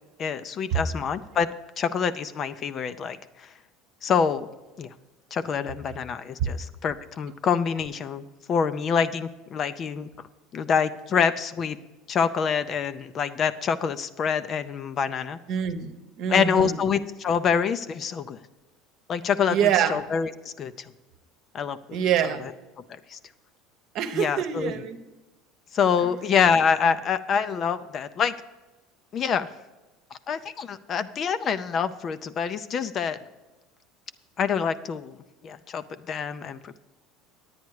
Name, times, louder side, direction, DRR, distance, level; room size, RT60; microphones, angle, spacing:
voice 1, 0.2-1.5 1.8-3.5 4.0-4.5 4.8-4.9 5.3-10.1 10.5-11.8 12.1-15.4 16.3-18.4 19.1-20.9 21.5-21.8 22.4-22.5 22.9-23.2 24.1-24.8 25.7-28.3 29.1-29.5 30.3-33.2 34.4-35.2 35.4-36.8, left 6 dB, 35° left, 13 dB, 0.5 m, -26 dB
voice 2, 15.5-16.8 19.5-20.0 21.9-22.5 23.9-25.0, right 9 dB, 55° right, 9 dB, 1.0 m, -25 dB
9.6 x 9.3 x 4.7 m, 1.1 s
supercardioid pair, 120°, 0 cm